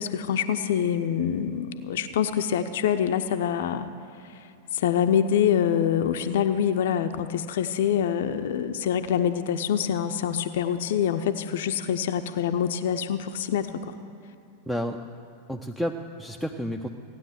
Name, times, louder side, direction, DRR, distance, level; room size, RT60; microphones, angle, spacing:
voice 1, 0.0-3.9 4.3-4.5 4.7-13.9, left 9 dB, 55° left, 9 dB, 0.6 m, -25 dB
voice 2, 14.7-15.0 15.5-16.9, equal, ahead, 3 dB, 0.6 m, -30 dB
16.0 x 9.9 x 7.9 m, 2.5 s
figure-of-eight pair, 90°, 0 cm